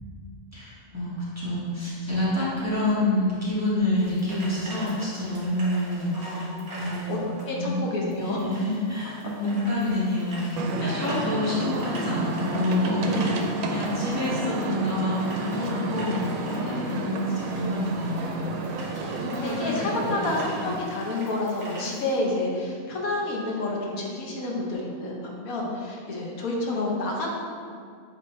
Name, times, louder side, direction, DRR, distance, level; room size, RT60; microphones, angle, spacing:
voice 1, 0.5-6.4 6.8-7.3 7.6-13.4 13.7-18.5 18.8-20.3, left 1 dB, 10° right, -10 dB, 1.4 m, -28 dB
sound 1, 4.0-22.2, right 1 dB, 70° right, 2.0 m, -44 dB
voice 2, 6.1-6.8 7.1-7.2 7.4-8.4 10.8-11.4 13.0-13.7 16.6-16.9 19.4-27.3, left 2 dB, 80° left, -2 dB, 1.4 m, -30 dB
sound 2, 10.6-20.8, right 2 dB, 85° right, 1.1 m, -31 dB
8.5 x 3.5 x 3.2 m, 2.2 s
omnidirectional pair, 1.5 m